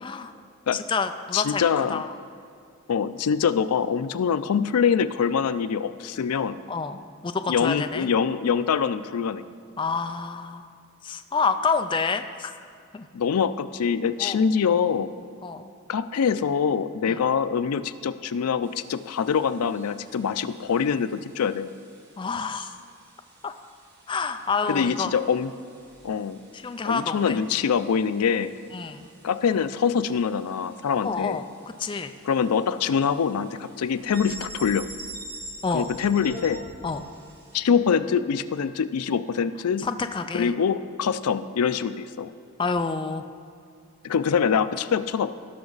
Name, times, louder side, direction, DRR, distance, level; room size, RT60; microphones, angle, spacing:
voice 1, 0.0-0.3 0.7-2.1 6.7-8.1 9.8-10.7 11.0-12.5 12.9-13.1 14.2-14.4 15.4-15.6 17.1-17.2 22.2-22.7 23.4-23.5 24.1-25.1 26.5-27.4 28.7-29.1 31.0-31.5 31.8-32.1 35.6-35.9 36.8-37.0 39.8-40.5 42.6-43.2, left 4 dB, 20° left, 7 dB, 0.3 m, -28 dB
voice 2, 1.3-2.0 2.9-6.6 7.5-9.5 13.1-15.1 15.9-21.7 24.7-25.5 26.0-26.4 26.9-28.5 29.2-31.4 32.2-34.9 35.7-36.6 37.5-39.9 40.3-42.3 44.0-45.3, left 6 dB, 90° left, 13 dB, 0.4 m, -24 dB
sound 1, 18.6-37.6, right 1 dB, 50° right, 1.4 m, -47 dB
17.5 x 6.0 x 3.9 m, 2.4 s
head